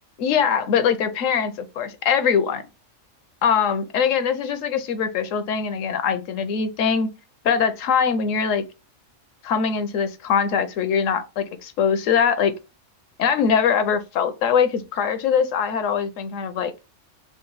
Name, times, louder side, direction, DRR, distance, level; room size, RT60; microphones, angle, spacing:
voice 1, 0.2-2.6 3.4-7.1 7.4-8.6 9.4-12.5 13.2-16.7, left 7 dB, 75° left, 1.0 m, -22 dB
3.9 x 2.1 x 3.8 m
omnidirectional pair, 1.4 m